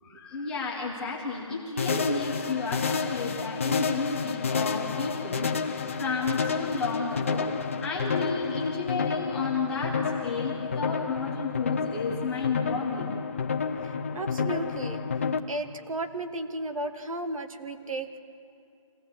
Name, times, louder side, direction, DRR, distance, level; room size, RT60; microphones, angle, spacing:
voice 1, 0.0-7.5 7.8-13.2, left 3 dB, 5° left, -4 dB, 0.9 m, -32 dB
sound 1, 1.8-15.4, left 5 dB, 25° left, 0.5 m, -30 dB
voice 2, 14.1-15.0 15.5-18.2, right 2 dB, 75° right, 8 dB, 1.5 m, -34 dB
25.5 x 17.0 x 7.3 m, 2.5 s
hypercardioid pair, 175°, 17 cm